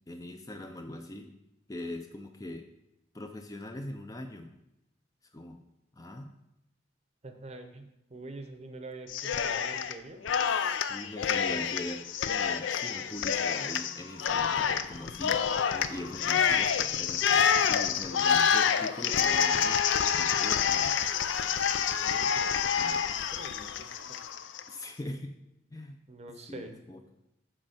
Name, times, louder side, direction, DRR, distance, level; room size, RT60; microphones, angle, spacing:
voice 1, 0.1-1.4 1.7-2.7 3.1-4.6 5.3-5.6 5.9-6.3 10.9-19.9 20.1-21.0 22.5-23.0 24.7-25.4 25.7-26.0 26.5-27.0, left 1 dB, 20° left, 5 dB, 0.4 m, -42 dB
voice 2, 7.2-10.2 22.0-24.2 26.1-26.8, right 2 dB, 35° right, 7 dB, 0.7 m, -46 dB
Cheering, 9.1-9.9 10.2-24.6, left 7 dB, 75° left, 0.4 m, -27 dB
7.7 x 4.3 x 5.7 m, 0.86 s
head